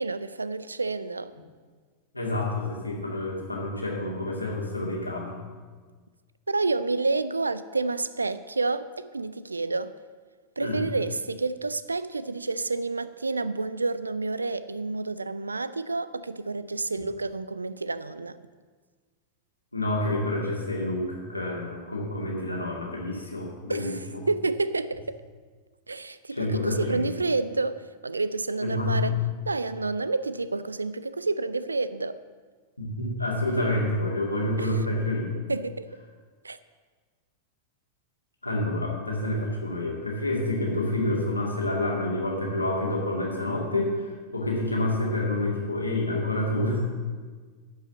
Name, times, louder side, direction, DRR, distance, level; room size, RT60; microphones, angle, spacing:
voice 1, 0.0-1.3 6.5-9.9 10.6-18.4 23.7-25.2 25.9-29.1 29.5-32.2 34.6-34.8 35.5-35.9 36.4-36.6, right 3 dB, 80° right, 0.4 m, -29 dB
voice 2, 2.1-5.4 10.6-10.8 19.7-23.9 26.3-27.1 28.6-29.1 32.8-35.3 38.4-46.8, left 1 dB, 85° left, 2.2 m, -28 dB
11.5 x 5.6 x 7.1 m
figure-of-eight pair, 90°, 0 cm